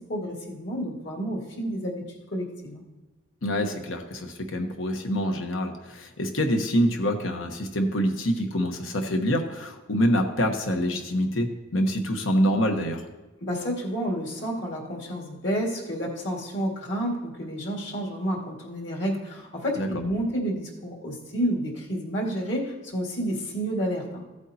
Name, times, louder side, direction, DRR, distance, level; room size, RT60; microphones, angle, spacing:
voice 1, 0.1-2.0 2.3-2.8 13.4-24.2, equal, 60° left, -1 dB, 2.1 m, -30 dB
voice 2, 3.4-13.1 19.8-19.9, equal, 75° left, 4 dB, 1.1 m, -26 dB
15.0 x 8.1 x 2.9 m, 1.2 s
head